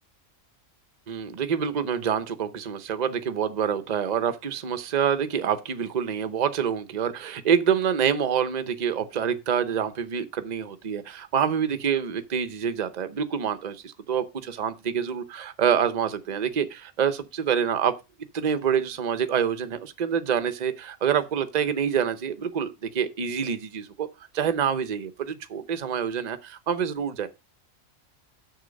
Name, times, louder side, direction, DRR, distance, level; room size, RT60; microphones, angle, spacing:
voice 1, 1.1-17.9 18.3-24.1 24.3-27.3, right 8 dB, 40° right, 0.8 m, -26 dB
6.6 x 6.6 x 5.1 m
omnidirectional pair, 1.4 m